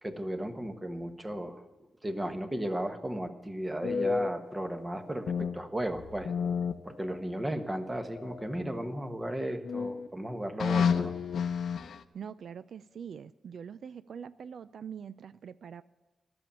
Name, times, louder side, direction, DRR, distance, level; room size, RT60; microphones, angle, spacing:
voice 1, 0.0-1.6 2.0-6.3 6.8-11.2, right 1 dB, 15° right, 7 dB, 1.2 m, -35 dB
sound 1, 3.8-5.6 5.9-7.4 8.2-9.1 9.6-10.1 10.6-12.0, left 6 dB, 70° left, 0.7 m, -31 dB
voice 2, 12.1-15.8, right 7 dB, 65° right, 14 dB, 0.3 m, -43 dB
14.0 x 7.0 x 8.9 m, 1.2 s
wide cardioid pair, 145°, 0 cm